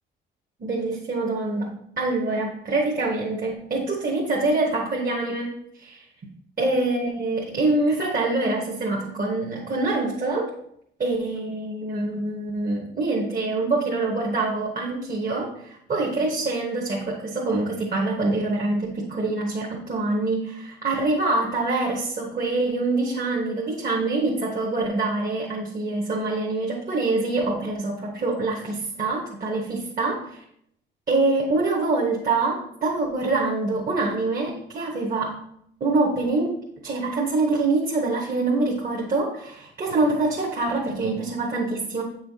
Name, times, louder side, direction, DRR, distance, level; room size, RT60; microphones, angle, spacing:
voice 1, 0.6-6.1 6.6-10.5 11.0-30.4 31.1-35.3 35.8-36.5 36.8-42.0, right 2 dB, 45° right, -1 dB, 1.2 m, -25 dB
7.7 x 5.6 x 2.8 m, 0.73 s
cardioid pair, 90°, 20 cm